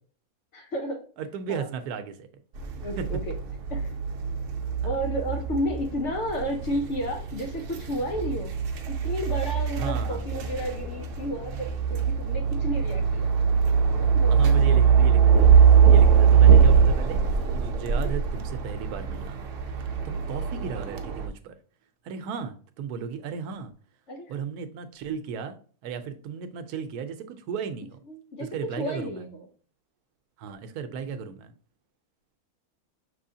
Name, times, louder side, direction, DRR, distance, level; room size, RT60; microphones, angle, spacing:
voice 1, 0.5-1.0 1.5-1.7 2.8-3.3 3.7-3.9 4.8-8.5 8.9-13.3 13.9-14.8 18.0-18.2 19.9-20.2 24.1-24.3 28.1-29.5 31.2-31.3, equal, 60° left, 1.0 m, -32 dB
voice 2, 1.2-2.3 3.0-3.1 4.8-4.9 9.8-10.2 14.3-17.2 17.5-19.4 20.0-21.6 22.0-23.7 24.3-25.6 25.8-28.0 28.4-29.2 30.4-31.5, right 6 dB, 90° right, 1.2 m, -35 dB
sound 1, 2.6-21.3, right 7 dB, 65° right, 0.9 m, -22 dB
6.1 x 3.1 x 2.7 m
omnidirectional pair, 1.6 m